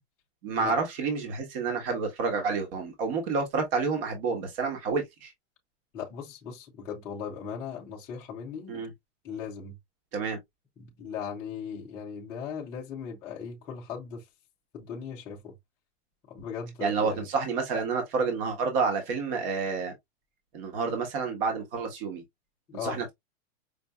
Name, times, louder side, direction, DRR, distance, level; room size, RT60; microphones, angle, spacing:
voice 1, 0.4-5.3 8.7-8.9 10.1-10.4 16.8-19.9 20.5-22.2 22.8-23.1, right 4 dB, 50° right, 1.3 m, -29 dB
voice 2, 5.9-8.9 9.2-9.8 10.8-14.3 14.7-15.6 16.3-17.2 22.7-23.0, left 7 dB, 10° left, 0.3 m, -38 dB
5.2 x 2.6 x 2.2 m
supercardioid pair, 160°, 37 cm